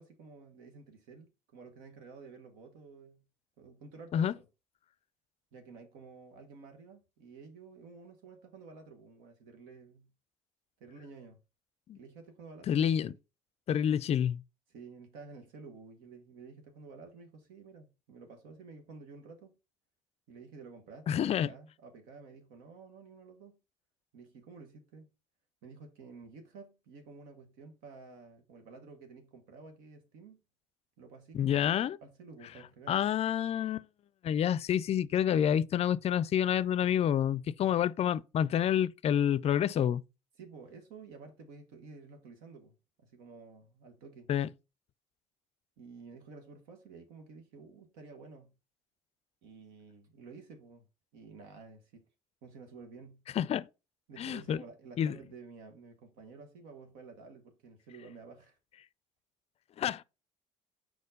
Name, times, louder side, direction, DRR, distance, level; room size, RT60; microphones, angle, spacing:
voice 1, 0.0-3.2 3.6-4.5 5.5-10.1 10.8-11.4 11.9-13.2 14.7-19.6 20.3-23.6 24.1-25.1 25.6-30.4 31.0-31.8 32.0-33.1 40.4-42.7 43.0-44.3 45.8-48.5 49.4-50.9 51.1-52.0 52.4-53.2 54.1-58.6, right 4 dB, 75° right, 1.1 m, -51 dB
voice 2, 12.7-13.1 13.7-14.4 21.1-21.5 31.3-32.0 32.9-33.9 34.2-40.0 44.3-44.5 53.4-53.7 54.2-54.6 55.0-55.1 59.8-60.0, left 9 dB, 45° left, 0.4 m, -28 dB
4.7 x 4.2 x 5.2 m
hypercardioid pair, 60°, 15 cm